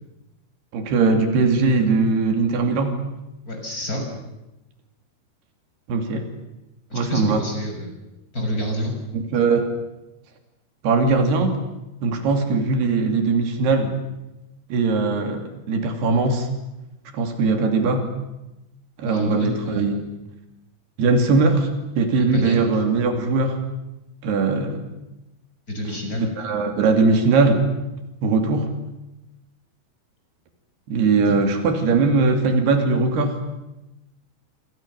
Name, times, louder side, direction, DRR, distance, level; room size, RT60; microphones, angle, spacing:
voice 1, 0.7-3.0 5.9-6.3 6.9-7.4 9.1-9.7 10.8-11.6 12.0-14.0 14.7-16.5 17.1-18.1 19.0-19.9 21.0-21.7 22.0-23.6 24.2-24.9 26.2-27.6 28.2-28.7 30.9-33.5, right 4 dB, 85° right, 5 dB, 4.7 m, -20 dB
voice 2, 3.5-4.0 6.9-8.0 8.3-8.9 19.0-20.0 22.2-22.6 25.7-26.3, left 1 dB, 20° left, 2 dB, 6.6 m, -28 dB
26.5 x 26.5 x 7.0 m, 0.96 s
omnidirectional pair, 4.6 m